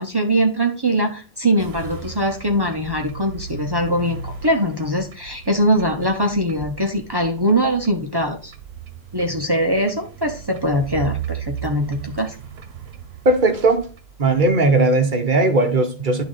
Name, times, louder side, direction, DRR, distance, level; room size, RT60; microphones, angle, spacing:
voice 1, 0.0-8.5 9.1-12.4, equal, 25° right, 0.9 m, -22 dB
sound 1, 1.6-14.4, right 7 dB, 85° right, 1.1 m, -36 dB
voice 2, 13.2-13.9 14.2-16.2, right 2 dB, 55° right, 1.2 m, -17 dB
10.5 x 3.8 x 4.0 m
omnidirectional pair, 1.0 m